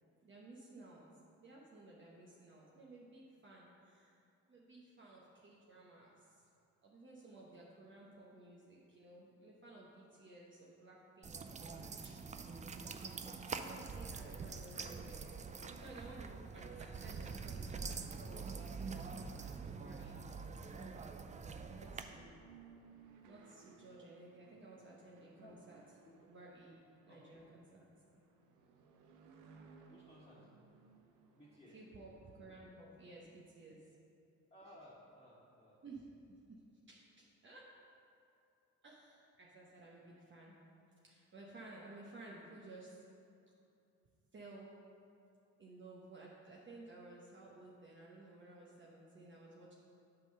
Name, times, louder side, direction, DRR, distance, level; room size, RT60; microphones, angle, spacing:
voice 1, 0.2-1.0 1.4-4.2 4.5-6.5 6.8-12.6 13.2-15.3 15.6-21.2 21.7-22.3 23.3-25.8 26.2-26.8 27.0-27.9 31.7-33.9 35.8-36.6 36.9-37.7 38.8-40.6 41.0-43.0 44.3-44.7 45.6-49.8, right 2 dB, 40° right, -4 dB, 1.1 m, -56 dB
sound 1, 11.2-22.0, right 5 dB, 25° right, 0.4 m, -45 dB
sound 2, 21.1-32.8, right 5 dB, 90° right, 0.8 m, -63 dB
voice 2, 27.0-27.5 29.9-30.5 31.4-31.7 34.5-35.8, equal, 20° left, -9 dB, 1.6 m, -59 dB
8.1 x 3.9 x 6.6 m, 2.6 s
cardioid pair, 90°, 30 cm